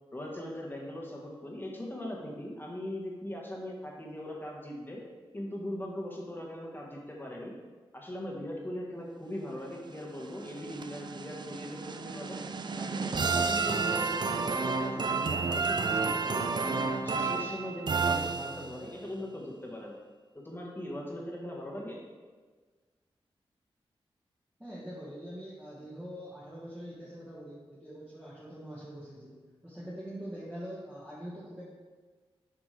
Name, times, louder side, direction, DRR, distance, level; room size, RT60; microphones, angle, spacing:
voice 1, 0.1-5.0 5.3-7.5 7.9-12.4 12.7-20.0 20.3-22.0, left 1 dB, 20° left, -2 dB, 1.4 m, -40 dB
sound 1, 10.0-18.9, right 4 dB, 50° right, 0.4 m, -31 dB
voice 2, 24.6-29.4 29.6-31.6, equal, 10° right, -9 dB, 1.7 m, -43 dB
7.4 x 5.0 x 3.4 m, 1.4 s
cardioid pair, 75°, 10 cm